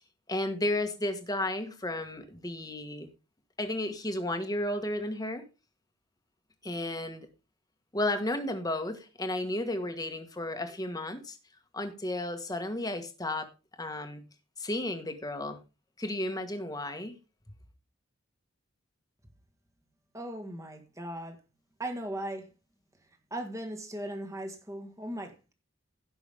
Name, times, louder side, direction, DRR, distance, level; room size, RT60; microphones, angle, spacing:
voice 1, 0.3-3.1 3.6-5.4 6.6-7.3 7.9-11.4 11.7-13.5 13.8-14.2 14.6-15.6 16.0-17.1, left 1 dB, 20° left, 1.5 m, -33 dB
voice 2, 20.1-21.3 21.8-22.5 23.3-25.5, right 1 dB, 15° right, 1.7 m, -38 dB
16.5 x 6.0 x 3.5 m
head